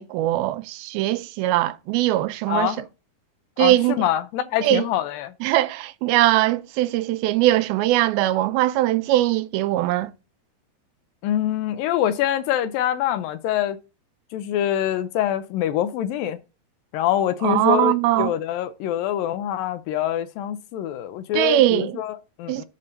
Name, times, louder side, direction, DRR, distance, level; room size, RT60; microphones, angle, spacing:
voice 1, 0.0-2.8 3.6-4.0 4.6-4.9 5.4-10.1 17.4-18.3 21.3-21.9 22.5-22.6, right 15 dB, 85° right, 2.5 m, -21 dB
voice 2, 2.5-2.8 3.6-5.3 11.2-13.8 14.3-16.4 16.9-22.6, left 11 dB, 80° left, 2.2 m, -25 dB
11.0 x 3.7 x 5.3 m
omnidirectional pair, 4.3 m